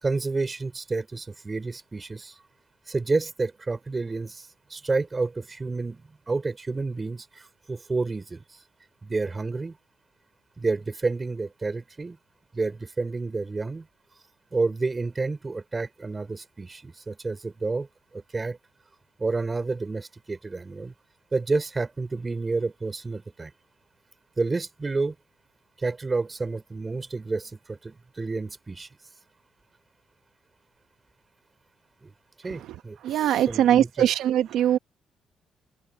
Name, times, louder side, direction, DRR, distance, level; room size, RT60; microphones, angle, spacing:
voice 1, 0.0-2.4 2.9-8.4 9.0-9.8 10.6-12.2 12.5-13.9 14.5-17.9 18.1-18.6 19.2-20.9 21.3-23.5 24.4-25.1 25.8-28.9 32.0-32.1 32.4-34.1, right 3 dB, 25° right, 5.1 m, -30 dB
voice 2, 33.0-34.8, right 11 dB, 80° right, 1.2 m, -21 dB
open air
cardioid pair, 90°, 0 cm